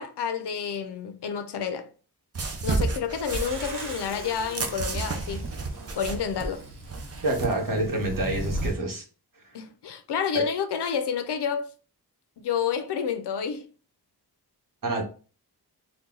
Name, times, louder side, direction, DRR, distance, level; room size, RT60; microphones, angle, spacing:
voice 1, 0.0-1.9 2.6-5.5 6.0-6.6 9.5-11.7 12.4-13.7, left 7 dB, 90° left, 0.6 m, -29 dB
sound 1, 2.3-7.5, right 3 dB, 40° right, 0.6 m, -31 dB
sound 2, 3.2-8.8, right 1 dB, 75° right, 1.2 m, -37 dB
voice 2, 7.2-9.0 10.3-10.4 14.8-15.0, right 2 dB, 55° right, 1.3 m, -27 dB
4.0 x 2.2 x 3.8 m
wide cardioid pair, 125°, 39 cm